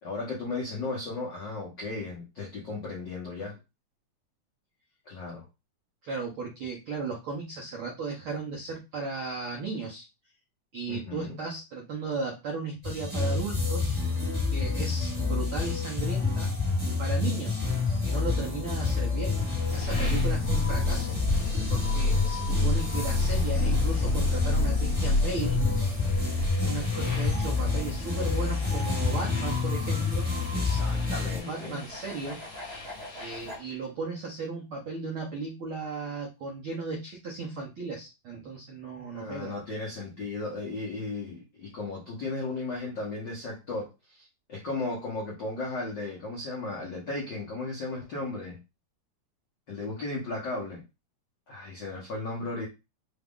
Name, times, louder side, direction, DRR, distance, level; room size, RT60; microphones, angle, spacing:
voice 1, 0.0-3.6 5.1-5.4 10.9-11.4 26.9-27.4 30.5-31.8 38.9-48.6 49.7-50.8 51.5-52.7, left 3 dB, 85° left, -3 dB, 0.9 m, -35 dB
voice 2, 6.0-10.0 10.7-14.0 14.5-16.5 17.0-17.6 18.0-19.4 19.7-21.1 21.7-25.6 26.6-30.3 31.3-32.4 33.1-39.6, right 4 dB, 75° right, -2 dB, 1.2 m, -36 dB
sound 1, 12.8-31.4, left 4 dB, 5° right, 0.9 m, -28 dB
sound 2, 19.1-33.7, left 2 dB, 55° left, 1.0 m, -31 dB
sound 3, 30.0-33.6, left 1 dB, 40° right, 0.9 m, -45 dB
4.8 x 2.4 x 3.5 m, 0.26 s
omnidirectional pair, 3.5 m